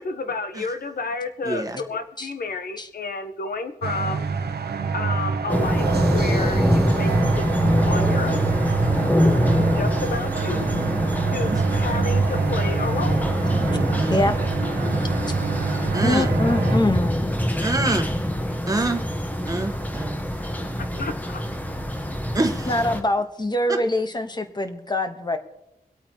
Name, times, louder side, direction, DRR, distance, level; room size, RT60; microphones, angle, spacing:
voice 1, 0.0-4.2 4.9-8.6 9.7-10.7 11.2-13.2 18.4-18.6 19.4-19.6 20.1-20.2 20.8-21.4, left 3 dB, 70° left, 8 dB, 1.2 m, -31 dB
voice 2, 1.4-1.8 8.8-9.7 13.9-14.3 15.9-16.3 17.6-18.1 18.7-19.0 19.5-20.2 22.3-22.7 23.7-23.8, right 2 dB, 20° right, 5 dB, 1.4 m, -26 dB
sound 1, 3.8-16.8, right 5 dB, 85° right, 0.9 m, -26 dB
sound 2, 5.5-23.0, equal, 10° left, 1.3 m, -24 dB
voice 3, 16.0-17.3 22.7-25.4, left 1 dB, 25° left, 7 dB, 1.3 m, -24 dB
25.0 x 8.7 x 3.1 m, 0.84 s
wide cardioid pair, 115°, 16 cm